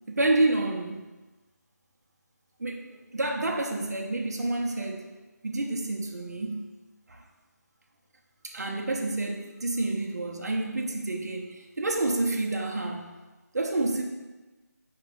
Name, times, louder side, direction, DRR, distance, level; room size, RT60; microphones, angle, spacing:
voice 1, 0.1-1.1 2.6-5.0 5.4-6.6 7.1-7.2 8.4-13.2 13.5-14.0, right 2 dB, 70° right, 0 dB, 0.7 m, -29 dB
4.7 x 2.4 x 4.0 m, 1.2 s
figure-of-eight pair, 180°, 9 cm